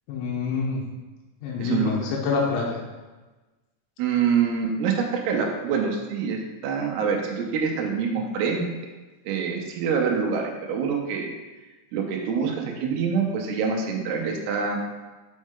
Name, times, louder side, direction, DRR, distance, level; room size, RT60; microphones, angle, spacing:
voice 1, 0.1-0.9 1.4-2.8, left 4 dB, 85° left, -2 dB, 2.7 m, -26 dB
voice 2, 1.6-2.1 4.0-8.7 9.3-11.3 11.9-14.8, right 6 dB, 85° right, 1 dB, 2.8 m, -26 dB
6.3 x 5.2 x 3.6 m, 1.2 s
omnidirectional pair, 4.7 m